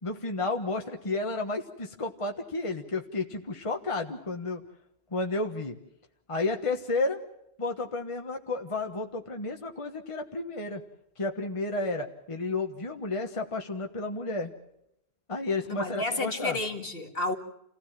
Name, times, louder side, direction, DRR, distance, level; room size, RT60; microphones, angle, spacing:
voice 1, 0.0-4.6 5.1-5.7 6.3-7.2 7.6-10.8 11.2-14.5 15.3-16.6, left 3 dB, 30° left, 1.3 m, -32 dB
voice 2, 15.7-17.4, left 2 dB, 60° left, 2.3 m, -31 dB
28.5 x 16.5 x 7.5 m
omnidirectional pair, 1.1 m